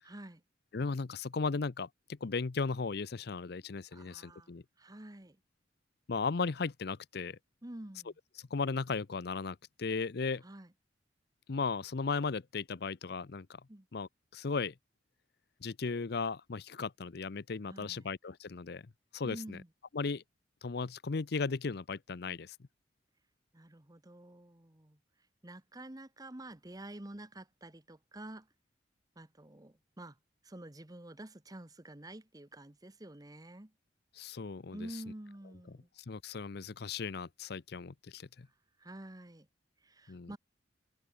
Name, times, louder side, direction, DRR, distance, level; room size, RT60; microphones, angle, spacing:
voice 1, 0.0-0.4 3.9-4.5 4.8-5.4 7.6-8.2 10.4-10.7 13.7-13.9 17.6-18.1 19.2-19.7 23.5-25.0 25.4-28.5 29.2-30.2 30.4-33.7 34.7-35.9 38.8-39.5 39.8-40.4, right 1 dB, 20° right, 1.2 m, -48 dB
voice 2, 0.7-4.6 6.1-7.4 8.5-10.4 11.5-13.6 13.9-14.7 15.6-18.9 19.1-19.6 19.9-20.2 20.6-22.6 34.2-34.8 36.1-38.5 40.1-40.3, left 4 dB, 60° left, 0.6 m, -36 dB
head